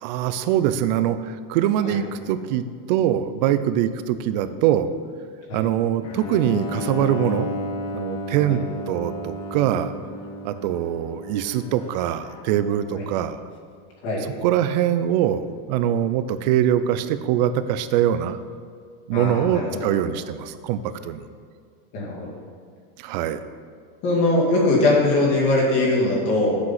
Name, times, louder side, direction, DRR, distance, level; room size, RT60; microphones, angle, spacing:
voice 1, 0.0-4.9 5.5-7.5 7.9-8.6 8.9-9.9 10.4-13.4 14.4-18.4 19.1-21.2 23.0-23.4, right 11 dB, 50° right, 13 dB, 0.5 m, -23 dB
Bowed string instrument, 6.0-13.0, left 1 dB, 15° left, 0.4 m, -33 dB
voice 2, 19.1-19.9 21.9-22.3 24.0-26.6, left 2 dB, 40° left, -4 dB, 2.2 m, -21 dB
7.8 x 6.0 x 5.7 m, 2.1 s
supercardioid pair, 170°, 30 cm